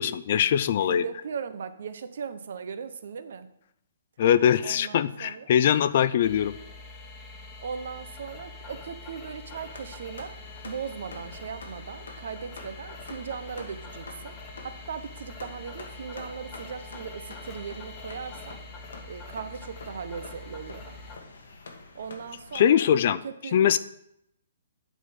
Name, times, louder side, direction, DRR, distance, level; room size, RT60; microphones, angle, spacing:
voice 1, 0.0-1.0 4.2-6.6 22.5-23.2 23.5-23.8, left 9 dB, 45° left, 16 dB, 0.4 m, -22 dB
voice 2, 0.8-3.5 4.6-5.5 7.6-10.4 10.6-14.4 14.6-18.6 19.1-21.0 21.9-22.9 23.2-23.6, right 6 dB, 65° right, 12 dB, 0.8 m, -38 dB
sound 1, 6.2-21.2, left 3 dB, 25° left, 1.2 m, -44 dB
sound 2, 9.4-22.7, left 3 dB, 85° left, 1.5 m, -47 dB
9.1 x 4.1 x 7.2 m, 0.78 s
hypercardioid pair, 160°, 0 cm